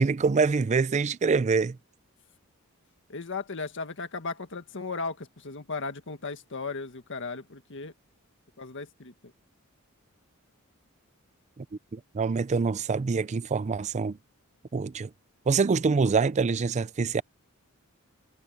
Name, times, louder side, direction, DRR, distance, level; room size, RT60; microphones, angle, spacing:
voice 1, 0.0-1.8 11.6-11.7 11.9-14.2 14.7-15.1 15.5-17.2, right 4 dB, 30° right, 0.4 m, -25 dB
voice 2, 3.1-7.9 8.6-9.3, left 4 dB, 60° left, 1.8 m, -36 dB
head